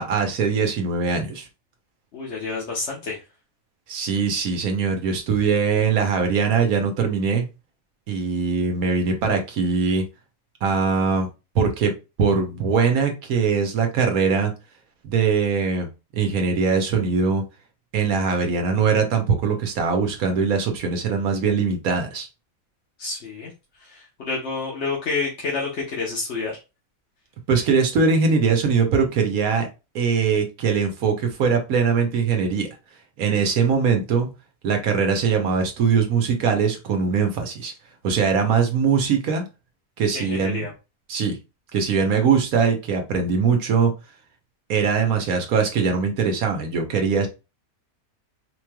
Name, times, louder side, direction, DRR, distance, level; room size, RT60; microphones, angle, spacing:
voice 1, 0.0-1.5 3.9-7.5 8.1-10.1 10.6-11.3 11.5-11.9 12.2-14.5 15.0-17.4 17.9-22.3 27.5-29.7 29.9-32.7 33.2-34.3 34.6-37.7 38.0-39.4 40.0-40.6 41.1-41.4 41.7-43.9 44.7-47.3, right 5 dB, 85° right, 4 dB, 1.3 m, -21 dB
voice 2, 2.1-3.2 23.0-23.5 23.8-26.5 40.1-40.7, left 4 dB, 55° left, -4 dB, 1.2 m, -29 dB
4.5 x 3.1 x 2.2 m, 0.28 s
omnidirectional pair, 1.5 m